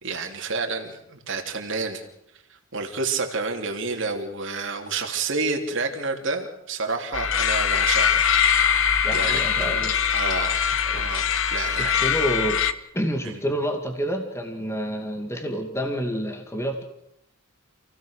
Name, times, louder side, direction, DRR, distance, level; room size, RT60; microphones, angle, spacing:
voice 1, 0.0-2.0 2.5-10.6 10.9-11.2 11.5-12.0 13.2-13.4, right 4 dB, 60° right, 3 dB, 3.1 m, -30 dB
sound 1, 7.1-12.7, left 8 dB, 65° left, 1.0 m, -22 dB
voice 2, 9.0-9.9 10.9-11.0 11.7-12.6 12.9-16.8, equal, 10° left, 5 dB, 2.2 m, -28 dB
28.5 x 17.0 x 6.6 m, 0.80 s
head